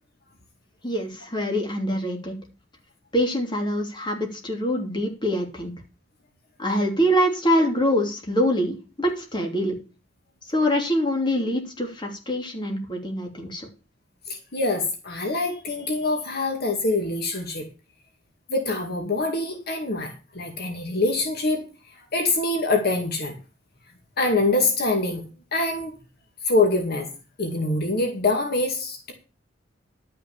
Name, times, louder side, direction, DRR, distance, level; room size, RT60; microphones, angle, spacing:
voice 1, 0.8-2.4 3.1-5.7 6.6-9.8 10.5-13.7, equal, 25° left, 1 dB, 3.0 m, -24 dB
voice 2, 14.3-17.7 18.5-23.3 24.2-25.2 25.5-25.9 26.4-27.1 27.4-29.1, left 2 dB, 55° left, 3 dB, 2.2 m, -25 dB
12.0 x 6.0 x 7.1 m, 0.34 s
head